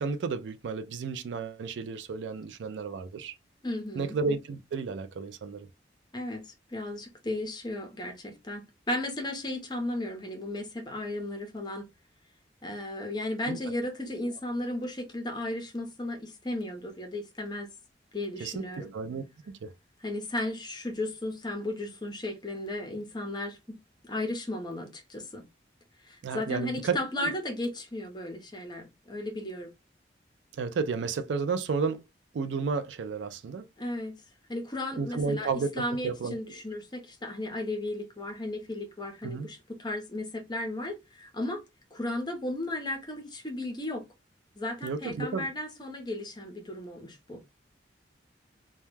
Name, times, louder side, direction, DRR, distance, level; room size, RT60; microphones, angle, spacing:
voice 1, 0.0-3.3 4.0-5.7 13.5-13.6 14.2-14.3 18.4-18.7 18.9-19.2 19.6-19.7 26.2-27.0 27.2-27.3 30.6-32.0 32.3-33.7 35.0-36.6 39.2-39.5 44.8-45.5, right 5 dB, 80° right, 0.4 m, -32 dB
voice 2, 3.6-4.2 6.1-11.9 12.6-17.7 18.1-18.9 20.0-23.8 24.0-25.4 26.0-29.7 33.8-34.1 34.5-41.6 41.9-44.0 44.6-47.4, left 1 dB, 25° left, 0.6 m, -35 dB
2.2 x 2.1 x 3.1 m
head